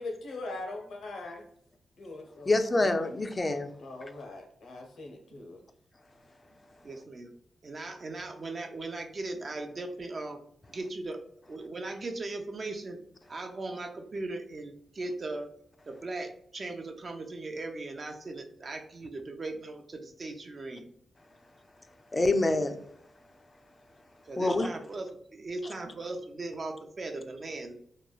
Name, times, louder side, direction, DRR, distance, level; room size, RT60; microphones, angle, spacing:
voice 1, 0.0-1.5 2.0-2.5 3.8-5.6, left 2 dB, 80° left, 1 dB, 0.7 m, -41 dB
voice 2, 2.5-3.7 22.1-22.8 24.4-24.7, left 2 dB, 25° left, 8 dB, 0.3 m, -26 dB
voice 3, 6.8-7.3 7.6-10.4 10.7-11.2 11.5-13.0 13.3-15.5 15.9-20.9 24.3-27.7, right 2 dB, 40° right, 4 dB, 0.5 m, -38 dB
3.0 x 2.2 x 2.3 m, 0.68 s
cardioid pair, 95°, 0 cm